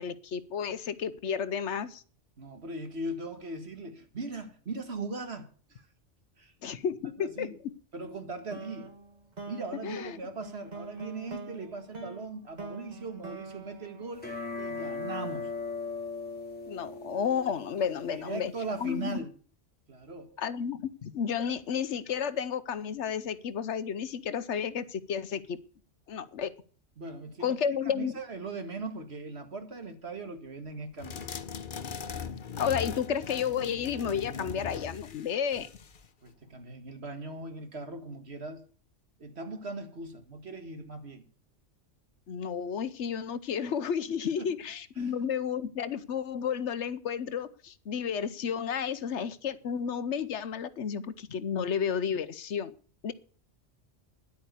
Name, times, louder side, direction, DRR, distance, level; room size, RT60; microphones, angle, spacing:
voice 1, 0.0-2.0 6.6-7.5 9.8-10.2 16.7-18.5 18.8-19.2 20.4-25.6 26.1-26.5 27.4-28.1 32.6-35.7 42.3-52.7 53.0-53.1, left 7 dB, 70° left, 1.1 m, -32 dB
voice 2, 2.4-5.9 6.4-6.5 7.2-7.6 7.9-8.9 9.5-14.3 14.6-15.5 18.1-19.3 19.9-20.4 27.0-27.6 27.9-31.3 36.2-38.6 39.2-41.2 44.4-44.5 45.0-45.1, right 2 dB, 60° right, 2.0 m, -39 dB
sound 1, 8.5-14.9, right 3 dB, 35° right, 1.7 m, -45 dB
sound 2, 14.2-19.2, left 4 dB, 5° left, 4.1 m, -39 dB
sound 3, 31.0-36.1, left 6 dB, 50° left, 0.9 m, -39 dB
10.5 x 8.6 x 8.2 m
omnidirectional pair, 1.2 m